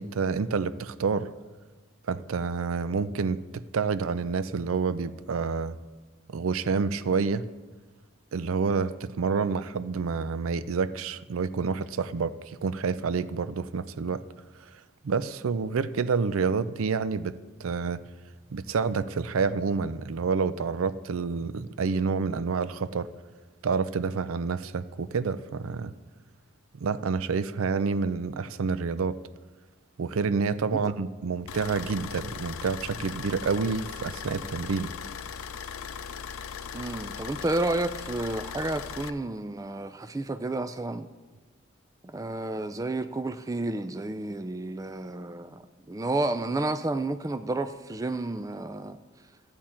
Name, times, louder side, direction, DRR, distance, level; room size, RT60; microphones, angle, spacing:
voice 1, 0.0-1.3 2.1-5.8 6.3-7.5 8.3-14.2 15.0-18.0 18.5-23.1 23.6-25.9 26.7-29.2 30.0-34.9, right 5 dB, 80° right, 15 dB, 0.5 m, -28 dB
sound 1, 31.5-39.1, left 7 dB, 90° left, 0.5 m, -39 dB
voice 2, 36.7-41.1 42.0-49.0, right 2 dB, 15° right, 10 dB, 0.3 m, -31 dB
14.5 x 8.7 x 4.4 m, 1.3 s
head